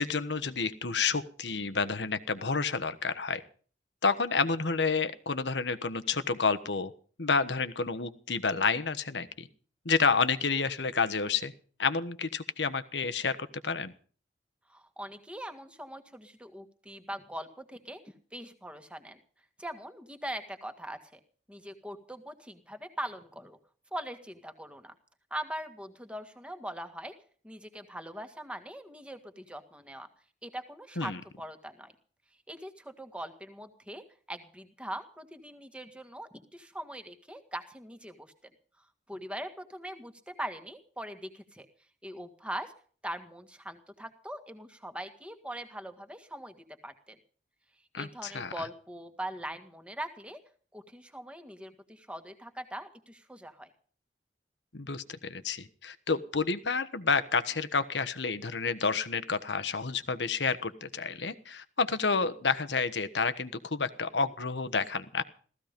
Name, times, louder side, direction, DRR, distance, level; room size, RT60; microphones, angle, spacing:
voice 1, 0.0-3.4 4.0-6.9 7.2-9.5 9.8-11.5 11.8-13.4 13.6-13.9 31.0-31.2 47.9-48.6 54.7-65.2, left 4 dB, 85° left, 12 dB, 1.3 m, -29 dB
voice 2, 14.7-18.0 18.3-19.2 19.6-21.2 21.5-23.6 23.9-24.9 25.3-27.1 27.4-30.1 30.4-31.9 32.5-38.3 39.1-41.7 42.0-42.7 43.0-46.6 46.8-47.2 48.0-50.4 50.7-53.7, right 1 dB, 5° right, 7 dB, 1.8 m, -41 dB
16.0 x 15.0 x 5.3 m, 0.43 s
head